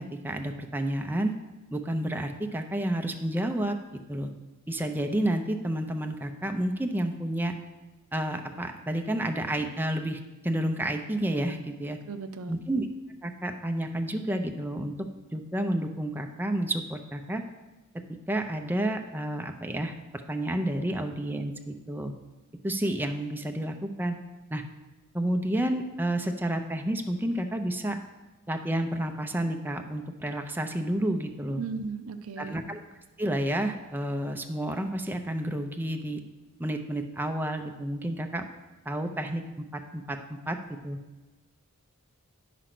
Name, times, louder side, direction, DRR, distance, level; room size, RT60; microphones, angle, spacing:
voice 1, 0.0-1.3 1.7-3.8 4.1-4.3 4.7-7.5 8.1-12.0 12.5-12.9 13.2-14.9 15.3-17.4 17.9-22.1 22.6-24.2 24.5-24.6 25.1-28.0 28.5-31.6 32.4-32.8 33.2-36.2 36.6-38.4 38.9-39.4 39.7-40.6 40.8-41.0, right 1 dB, 10° right, 5 dB, 0.5 m, -30 dB
voice 2, 12.1-12.6 31.6-32.6, right 4 dB, 75° right, 9 dB, 0.6 m, -36 dB
10.0 x 5.0 x 5.9 m, 1.2 s
head